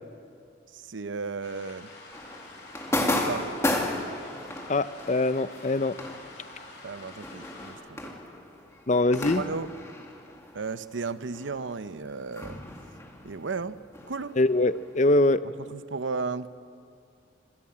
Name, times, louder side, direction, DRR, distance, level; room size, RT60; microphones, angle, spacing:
voice 1, 0.7-1.9 2.9-3.5 6.8-8.1 9.4-9.7 10.5-12.6 13.2-13.8 14.1-14.4 15.6-16.5, right 4 dB, 85° right, 13 dB, 0.8 m, -34 dB
sound 1, 1.4-7.7, left 2 dB, 60° left, 7.3 m, -47 dB
sound 2, 2.1-11.1 11.3-14.9, left 1 dB, 15° left, 2.1 m, -34 dB
voice 2, 4.7-5.9 8.9-9.4 14.4-15.4, left 2 dB, 40° left, 14 dB, 0.6 m, -23 dB
26.5 x 16.0 x 8.6 m, 2.4 s
head